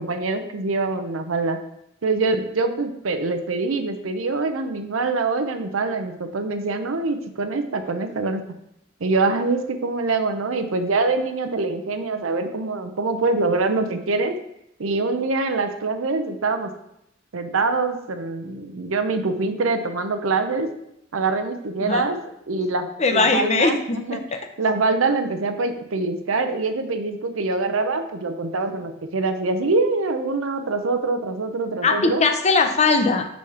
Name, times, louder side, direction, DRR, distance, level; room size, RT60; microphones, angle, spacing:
voice 1, 0.0-1.6 2.0-8.4 9.0-14.4 14.8-16.7 17.3-20.7 21.1-22.2 22.5-24.2 24.6-32.2, right 3 dB, 90° right, 8 dB, 0.7 m, -24 dB
voice 2, 23.0-24.2 31.8-33.2, left 4 dB, 35° left, 5 dB, 0.6 m, -20 dB
4.8 x 4.1 x 5.8 m, 0.80 s
head